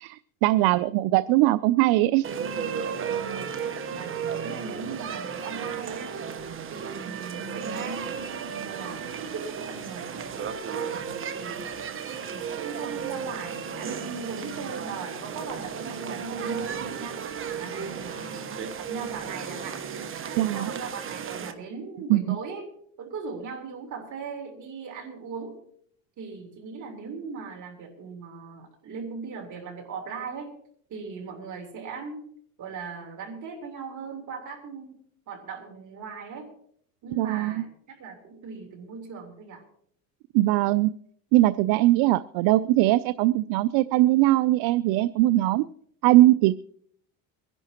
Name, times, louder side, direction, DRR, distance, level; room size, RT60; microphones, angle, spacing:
voice 1, 0.0-2.3 20.4-20.6 22.1-22.4 37.2-37.6 40.3-40.9 41.3-45.7 46.0-46.6, right 16 dB, 65° right, 17 dB, 0.5 m, -21 dB
sound 1, 2.2-21.5, right 7 dB, 30° right, 1.2 m, -34 dB
voice 2, 3.3-3.6 3.9-6.1 6.7-8.1 8.6-11.7 12.3-17.2 17.6-19.8 20.2-22.7 23.0-25.6 26.2-30.5 30.9-32.3 32.6-35.0 35.3-36.5 37.0-39.6 45.4-45.6, right 5 dB, 45° right, 2 dB, 3.7 m, -39 dB
24.0 x 11.0 x 3.0 m, 0.65 s
supercardioid pair, 115°, 39 cm